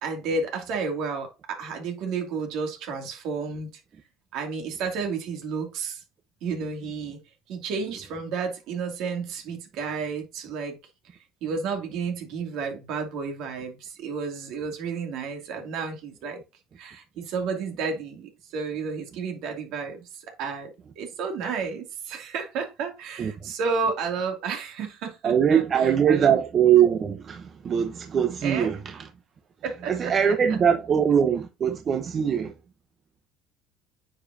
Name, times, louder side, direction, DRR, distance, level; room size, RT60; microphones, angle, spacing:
voice 1, 0.0-3.7 4.3-6.0 6.4-7.2 7.5-10.8 11.4-16.4 16.8-20.7 21.0-26.4 28.4-28.7 29.6-30.1, right 5 dB, 70° right, 2.4 m, -31 dB
voice 2, 25.2-29.0 29.9-32.5, right 8 dB, 40° right, 0.7 m, -22 dB
9.4 x 5.1 x 2.7 m
cardioid pair, 115°, 0 cm